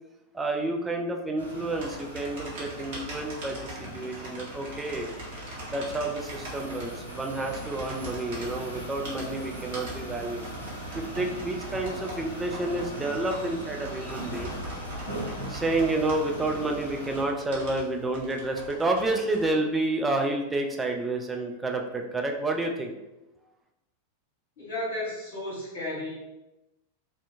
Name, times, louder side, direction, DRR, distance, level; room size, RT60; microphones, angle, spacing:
voice 1, 0.3-5.1 5.7-10.4 10.9-14.6 15.5-22.9, right 2 dB, 10° right, 2 dB, 0.4 m, -29 dB
sound 1, 1.4-17.2, right 1 dB, 85° left, 0.6 m, -40 dB
sound 2, 1.7-19.5, right 1 dB, 50° right, 0.9 m, -43 dB
sound 3, 6.2-19.5, left 1 dB, 80° right, 0.7 m, -46 dB
voice 2, 24.6-26.1, left 1 dB, 55° left, -6 dB, 1.4 m, -33 dB
2.6 x 2.2 x 2.6 m, 0.96 s
figure-of-eight pair, 90°, 0 cm